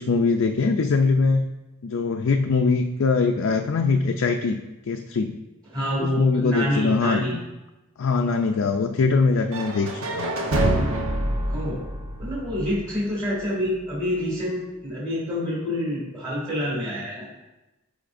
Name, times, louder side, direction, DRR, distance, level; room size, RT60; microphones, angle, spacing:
voice 1, 0.0-1.5 1.8-4.6 4.9-5.4 6.0-7.4 8.0-10.3, left 4 dB, 65° left, 4 dB, 0.4 m, -22 dB
voice 2, 5.7-7.4 11.5-11.8 12.2-17.3, left 1 dB, 20° right, -8 dB, 2.4 m, -27 dB
sound 1, 9.5-13.4, right 1 dB, 80° right, 1.1 m, -26 dB
13.0 x 5.1 x 2.6 m, 1.0 s
head